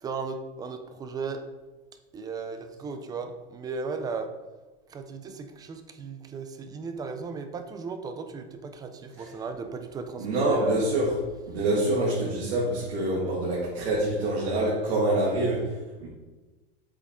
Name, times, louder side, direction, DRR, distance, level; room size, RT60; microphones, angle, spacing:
voice 1, 0.0-1.4 2.1-4.3 4.9-10.8, right 4 dB, 10° right, 8 dB, 0.4 m, -36 dB
voice 2, 10.2-15.7 16.0-16.1, right 1 dB, 85° right, -4 dB, 2.1 m, -26 dB
7.9 x 6.1 x 3.7 m, 1.2 s
supercardioid pair, 145°, 32 cm